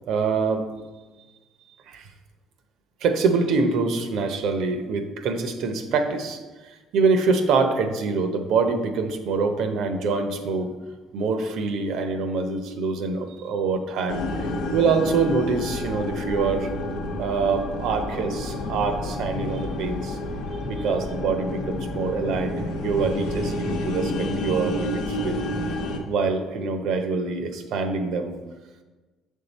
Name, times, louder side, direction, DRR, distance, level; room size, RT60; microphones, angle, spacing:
voice 1, 0.1-0.6 1.9-2.1 3.0-6.4 6.7-10.7 11.1-14.5 14.7-16.7 17.2-20.2 20.7-25.4 26.1-28.3, right 4 dB, 75° right, 7 dB, 0.7 m, -25 dB
sound 1, 14.1-26.0, left 1 dB, 80° left, 0.7 m, -29 dB
6.5 x 3.7 x 4.0 m, 1.2 s
cardioid pair, 90°, 0 cm